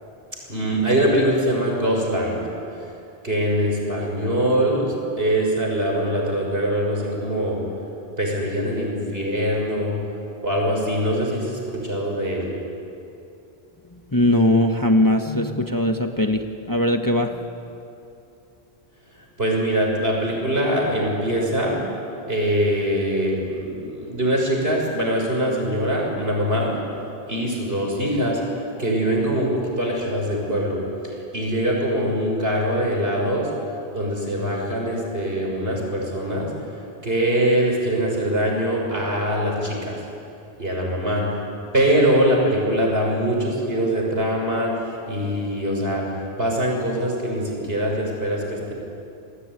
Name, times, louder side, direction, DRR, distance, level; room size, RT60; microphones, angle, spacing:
voice 1, 0.5-2.4 3.2-7.6 8.2-9.9 10.4-12.5 19.4-21.8 22.3-26.7 27.3-28.4 28.8-30.8 31.0-33.5 33.9-36.5 37.0-40.0 40.6-41.3 41.7-46.1 46.4-48.7, equal, 65° right, -1 dB, 6.6 m, -23 dB
voice 2, 14.1-17.3, left 1 dB, 20° left, 4 dB, 1.3 m, -20 dB
29.0 x 20.0 x 9.9 m, 2.7 s
omnidirectional pair, 1.1 m